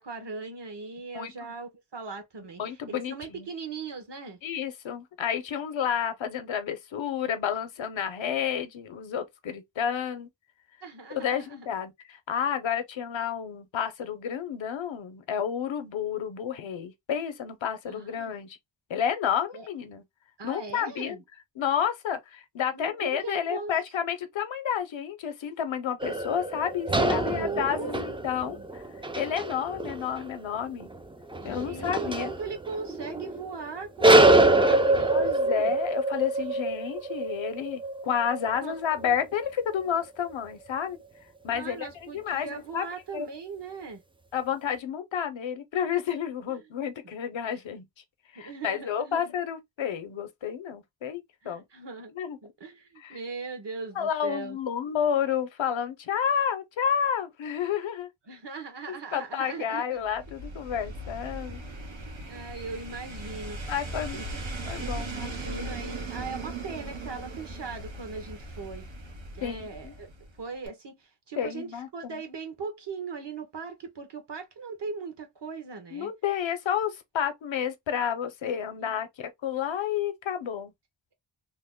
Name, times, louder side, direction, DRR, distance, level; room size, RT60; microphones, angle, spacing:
voice 1, 0.0-2.8 3.1-4.4 10.8-11.7 17.9-18.3 19.5-19.7 20.4-21.2 22.7-23.7 27.0-27.9 28.4-28.7 31.4-35.7 38.5-38.8 39.0-39.1 41.5-44.0 46.5-46.6 47.0-47.1 48.4-49.3 51.4-52.1 52.4-54.6 58.3-60.1 62.3-63.7 64.1-64.3 64.8-68.9 69.3-70.1 70.4-76.1 78.8-79.0, right 4 dB, 60° right, 1.1 m, -39 dB
voice 2, 2.6-3.5 4.4-10.3 11.1-18.6 18.9-20.0 20.4-21.2 21.6-28.8 29.2-30.9 31.4-32.3 34.6-34.8 35.1-41.0 41.4-42.8 43.1-43.3 44.3-47.9 48.3-51.2 51.5-51.6 52.1-52.4 53.0-53.2 54.0-58.1 58.9-61.6 63.7-64.2 64.7-65.7 69.4-69.9 71.4-72.2 75.9-80.7, left 8 dB, 75° left, 0.7 m, -30 dB
sound 1, 26.0-33.6 34.0-40.5, right 2 dB, 15° right, 0.3 m, -25 dB
sound 2, 60.0-70.4 70.7-70.8, right 2 dB, 90° right, 1.1 m, -38 dB
2.9 x 2.1 x 3.6 m
wide cardioid pair, 105°, 46 cm